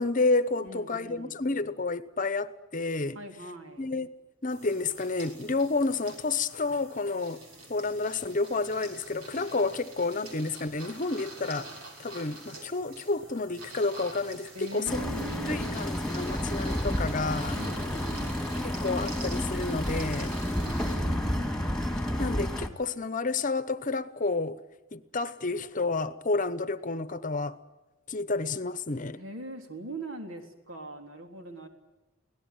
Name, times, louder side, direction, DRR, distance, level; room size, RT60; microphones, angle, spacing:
voice 1, 0.0-3.2 3.8-4.1 4.4-7.4 7.7-11.7 12.0-17.6 18.6-20.4 22.2-24.6 24.9-27.6 28.1-29.2, left 3 dB, 40° left, 0.9 m, -30 dB
voice 2, 0.6-1.4 3.1-3.9 14.5-15.8 17.6-18.4 20.4-21.6 29.1-31.7, right 2 dB, 75° right, 3.6 m, -42 dB
sound 1, 4.5-21.0, right 2 dB, 90° right, 6.5 m, -46 dB
sound 2, 14.9-22.7, left 1 dB, 5° left, 2.1 m, -30 dB
24.0 x 17.5 x 9.5 m
head